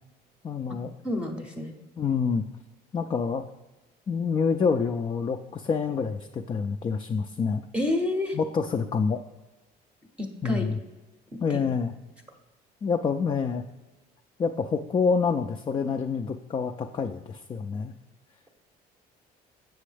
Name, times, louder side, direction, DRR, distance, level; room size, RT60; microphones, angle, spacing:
voice 1, 0.4-0.9 2.0-2.4 2.9-3.4 4.1-7.6 8.3-9.2 10.4-10.8 11.4-11.9 12.8-13.6 14.4-17.9, left 5 dB, 30° left, 5 dB, 0.3 m, -27 dB
voice 2, 1.0-1.8 7.7-8.4 10.2-10.6 11.3-11.6, left 1 dB, 5° right, 2 dB, 0.7 m, -29 dB
7.4 x 6.1 x 3.3 m, 1.1 s
cardioid pair, 110°, 17 cm